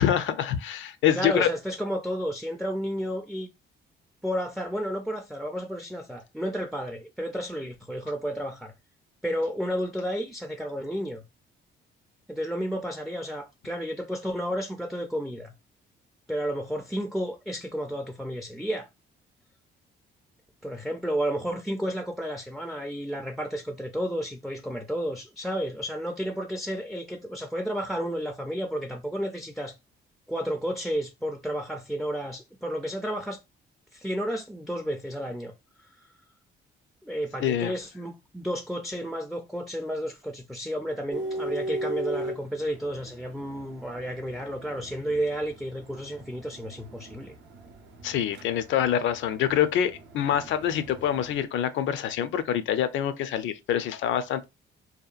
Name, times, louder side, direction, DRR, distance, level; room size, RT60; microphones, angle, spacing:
voice 1, 0.0-1.5 37.4-37.7 48.0-54.4, left 10 dB, 75° left, 0.4 m, -26 dB
voice 2, 1.2-3.5 4.2-8.7 9.2-11.2 12.3-15.5 16.3-18.9 20.6-29.7 30.3-33.4 33.9-35.5 37.0-47.3, equal, ahead, 0.3 m, -32 dB
sound 1, 41.1-51.4, right 1 dB, 70° right, 0.6 m, -39 dB
2.8 x 2.2 x 2.4 m
cardioid pair, 90°, 20 cm